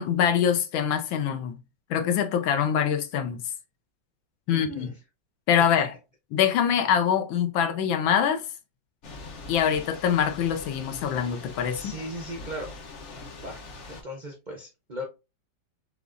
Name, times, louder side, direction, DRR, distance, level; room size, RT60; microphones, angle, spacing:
voice 1, 0.0-1.5 1.9-3.4 4.5-4.9 5.5-5.9 6.3-8.4 9.5-11.9, left 8 dB, 85° left, 1.5 m, -24 dB
voice 2, 4.5-5.0 11.7-12.7 13.4-13.6 13.9-15.0, equal, 65° right, 0.4 m, -37 dB
Thunder / Rain, 9.0-14.0, left 3 dB, 55° left, 0.8 m, -42 dB
6.7 x 2.4 x 2.5 m
omnidirectional pair, 2.1 m